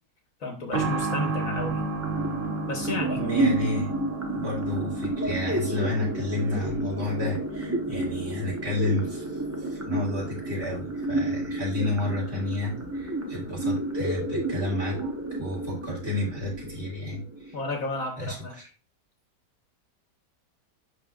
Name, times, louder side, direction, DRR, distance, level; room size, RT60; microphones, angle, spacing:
voice 1, 0.4-1.8 2.7-3.2 17.5-18.5, left 3 dB, 60° left, 4 dB, 1.5 m, -32 dB
sound 1, 0.7-15.1 15.4-15.5 16.5-16.6, right 3 dB, 75° right, 1.9 m, -35 dB
sound 2, 2.0-18.0, right 2 dB, 10° right, 0.8 m, -31 dB
voice 2, 3.2-3.9 4.3-17.6 18.2-18.7, left 2 dB, 40° right, -5 dB, 3.8 m, -31 dB
11.0 x 3.9 x 2.4 m, 0.38 s
omnidirectional pair, 1.8 m